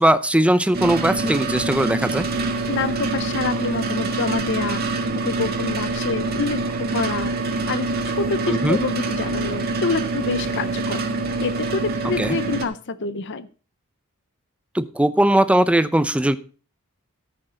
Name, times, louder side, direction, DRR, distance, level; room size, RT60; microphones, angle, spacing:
voice 1, 0.0-2.3 8.5-8.8 12.2-12.4 14.7-16.4, right 1 dB, 5° right, 12 dB, 0.7 m, -19 dB
sound 1, 0.7-12.6, right 3 dB, 45° right, 1.7 m, -25 dB
voice 2, 2.7-11.0 11.4-13.5, left 4 dB, 55° left, 14 dB, 0.8 m, -27 dB
14.0 x 6.6 x 5.0 m, 0.37 s
head